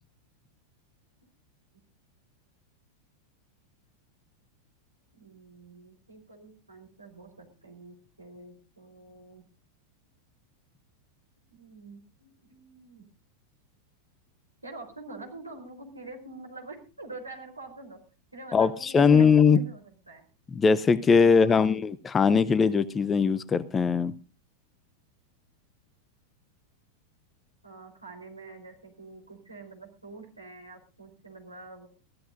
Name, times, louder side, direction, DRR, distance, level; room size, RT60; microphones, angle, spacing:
voice 1, 5.1-9.4 11.5-13.0 14.6-18.0 18.3-20.2 21.2-21.6 27.6-31.9, right 2 dB, 80° right, 2 dB, 4.0 m, -46 dB
voice 2, 18.5-19.6 20.5-24.1, left 5 dB, 20° left, 19 dB, 0.7 m, -21 dB
21.5 x 15.0 x 2.6 m, 0.32 s
figure-of-eight pair, 90°, 0 cm